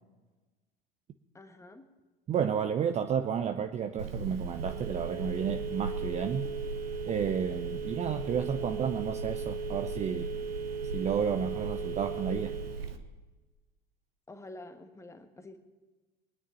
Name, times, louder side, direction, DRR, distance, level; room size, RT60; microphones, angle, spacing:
voice 1, 1.3-1.8 14.3-15.6, left 2 dB, 10° left, 1.4 m, -48 dB
voice 2, 2.3-6.5 7.1-10.3 10.9-12.6, right 8 dB, 20° right, 0.6 m, -31 dB
Telephone, 4.0-13.0, right 4 dB, 75° right, 1.2 m, -36 dB
24.0 x 9.8 x 5.5 m
figure-of-eight pair, 75°, 30 cm